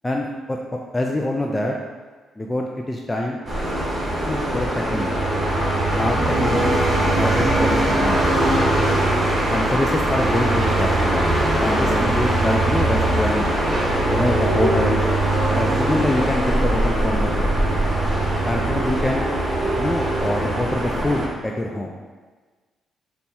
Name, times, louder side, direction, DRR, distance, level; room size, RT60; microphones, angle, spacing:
voice 1, 0.0-0.6 0.9-1.8 2.4-3.4 4.2-5.3 5.9-6.8 7.1-8.4 9.5-11.2 11.6-13.5 14.1-15.0 15.5-17.5 18.4-19.3 19.8-21.9, left 1 dB, 15° left, 0 dB, 0.3 m, -25 dB
sound 1, 3.5-21.3, right 1 dB, 30° right, 1.2 m, -21 dB
sound 2, 4.8-21.1, right 7 dB, 60° right, 0.4 m, -29 dB
4.1 x 2.3 x 4.2 m, 1.4 s
cardioid pair, 90°, 0 cm